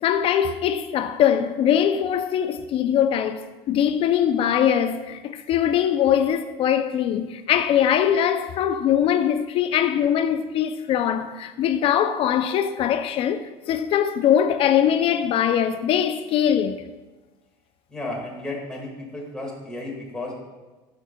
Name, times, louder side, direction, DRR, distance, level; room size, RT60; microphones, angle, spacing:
voice 1, 0.0-16.8, left 9 dB, 45° left, 0.4 m, -22 dB
voice 2, 17.9-20.4, left 2 dB, 5° left, 1.8 m, -33 dB
12.0 x 5.6 x 2.2 m
cardioid pair, 130°, 13 cm